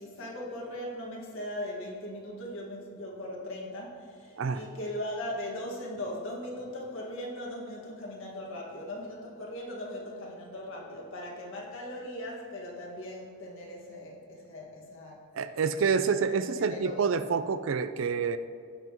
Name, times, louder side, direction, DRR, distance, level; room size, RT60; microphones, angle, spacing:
voice 1, 0.0-15.2 16.7-17.0, left 1 dB, 65° left, -3 dB, 1.8 m, -39 dB
voice 2, 15.3-18.4, right 5 dB, 65° right, 12 dB, 0.4 m, -28 dB
16.5 x 5.8 x 3.0 m, 2.2 s
head